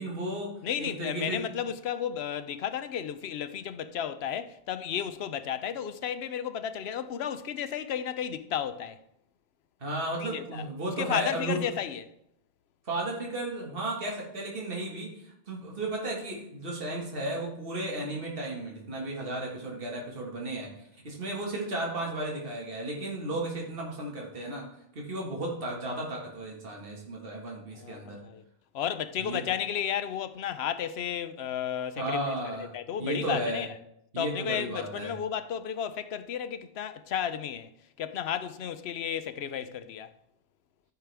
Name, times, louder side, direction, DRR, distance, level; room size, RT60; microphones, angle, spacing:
voice 1, 0.0-1.5 9.8-11.7 12.9-24.7 25.0-28.2 29.2-29.4 32.0-32.7 33.0-33.6 34.1-35.1, right 1 dB, 60° right, 2.0 m, -34 dB
voice 2, 0.6-9.0 10.2-10.6 11.0-12.1 27.8-28.4 28.7-33.7 34.2-37.7 38.0-40.1, left 9 dB, 85° left, 0.9 m, -33 dB
13.5 x 5.9 x 3.4 m
omnidirectional pair, 1.1 m